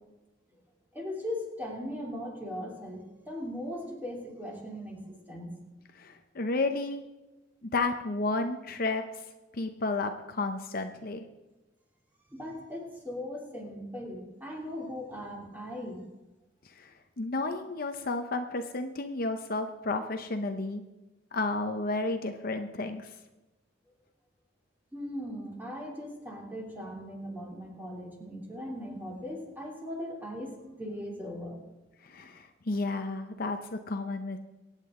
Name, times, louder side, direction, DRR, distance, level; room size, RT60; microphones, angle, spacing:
voice 1, 0.9-5.5 12.3-16.0 24.9-31.6, left 1 dB, 10° right, -2 dB, 2.8 m, -39 dB
voice 2, 5.9-7.0 7.6-9.2 9.5-11.2 16.6-20.8 21.3-23.1 32.0-34.4, left 3 dB, 50° left, 6 dB, 0.7 m, -32 dB
23.5 x 9.1 x 3.7 m, 1.1 s
head